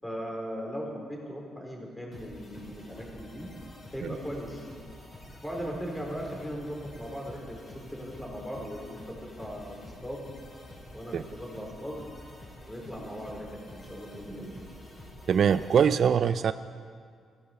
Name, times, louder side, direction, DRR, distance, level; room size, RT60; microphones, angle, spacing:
voice 1, 0.0-3.5 3.9-4.7 5.4-9.8 10.0-10.2 10.9-12.1 12.7-14.6, equal, 10° left, -1 dB, 4.2 m, -38 dB
sound 1, 2.1-15.8, left 1 dB, 35° left, 4.3 m, -48 dB
voice 2, 15.3-16.5, right 7 dB, 55° right, 12 dB, 0.4 m, -22 dB
15.0 x 11.5 x 7.0 m, 2.1 s
cardioid pair, 90°, 0 cm